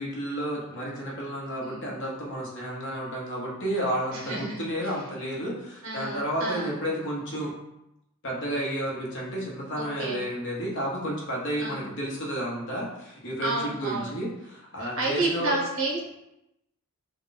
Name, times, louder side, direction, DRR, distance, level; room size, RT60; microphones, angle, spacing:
voice 1, 0.0-7.5 8.2-15.5, right 1 dB, 55° left, -4 dB, 1.0 m, -31 dB
voice 2, 1.6-1.9 4.1-4.9 5.8-6.8 9.7-10.2 11.6-11.9 13.4-14.1 14.8-16.1, right 2 dB, 65° right, -2 dB, 1.0 m, -31 dB
3.7 x 2.4 x 3.9 m, 0.88 s
head